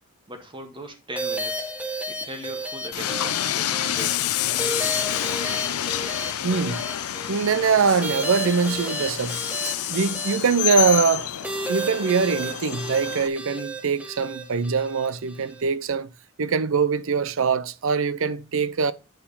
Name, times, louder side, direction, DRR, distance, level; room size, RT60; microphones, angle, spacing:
voice 1, 0.3-1.7 2.1-4.2 4.5-5.6, right 1 dB, 20° right, 1.6 m, -40 dB
sound 1, 1.2-15.6, right 1 dB, 5° right, 1.2 m, -33 dB
Train, 2.9-13.3, left 12 dB, 80° left, 0.5 m, -28 dB
voice 2, 6.4-6.8 7.3-11.3 11.7-16.1 16.4-18.9, right 5 dB, 60° right, 0.5 m, -23 dB
9.1 x 4.6 x 5.5 m
head